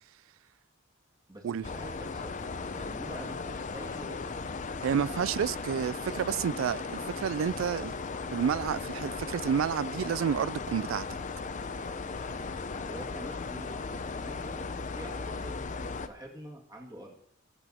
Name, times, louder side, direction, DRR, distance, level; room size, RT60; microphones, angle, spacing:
voice 1, 1.3-2.4 2.7-4.3 5.5-5.7 12.8-14.6 14.9-15.6 16.0-17.1, equal, 20° right, 2.2 m, -46 dB
sound 1, 1.6-16.1, left 4 dB, 40° left, 0.6 m, -37 dB
voice 2, 4.8-7.9 8.3-11.1, right 7 dB, 80° right, 0.3 m, -30 dB
19.5 x 6.9 x 4.3 m
head